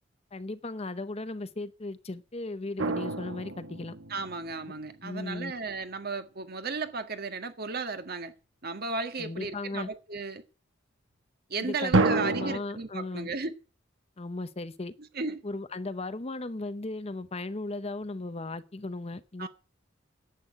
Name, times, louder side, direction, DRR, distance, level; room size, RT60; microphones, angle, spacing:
voice 1, 0.3-4.0 5.0-5.5 9.2-9.9 11.6-13.3 14.2-14.9 15.4-19.5, left 2 dB, 30° left, 0.8 m, -36 dB
sound 1, 2.8-4.9 11.9-12.6, right 2 dB, 85° right, 1.4 m, -28 dB
voice 2, 4.1-8.3 8.6-10.4 11.5-13.5 15.1-15.4 19.4-19.5, right 4 dB, 50° right, 1.7 m, -35 dB
11.0 x 8.5 x 9.8 m
head